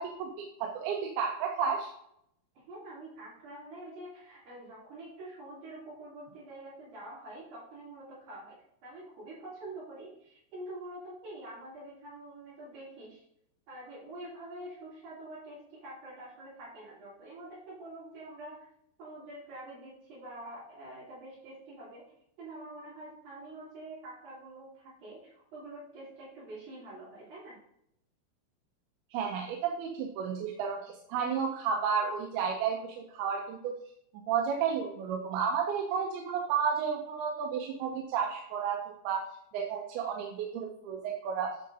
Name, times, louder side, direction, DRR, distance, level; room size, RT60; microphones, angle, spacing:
voice 1, 0.0-1.9 29.1-33.7 34.3-39.3 39.5-41.5, right 6 dB, 85° right, 1 dB, 2.7 m, -32 dB
voice 2, 2.5-8.6 8.8-13.2 13.7-18.7 19.0-22.0 22.4-27.6, right 1 dB, 70° right, -13 dB, 5.1 m, -46 dB
9.9 x 6.5 x 2.8 m, 0.74 s
omnidirectional pair, 4.4 m